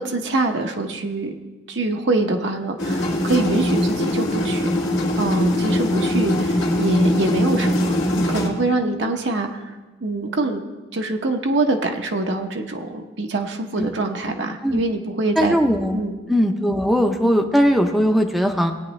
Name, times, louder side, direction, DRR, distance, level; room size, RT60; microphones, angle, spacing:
voice 1, 0.0-1.3 1.7-4.7 5.2-9.7 10.0-10.6 10.9-15.5 15.9-16.2, right 2 dB, 70° right, 2 dB, 0.8 m, -24 dB
sound 1, 2.8-8.5, left 1 dB, 80° left, 2.0 m, -21 dB
voice 2, 15.4-16.0 16.3-18.7, equal, ahead, 4 dB, 0.6 m, -19 dB
18.0 x 8.9 x 3.2 m, 1.2 s
head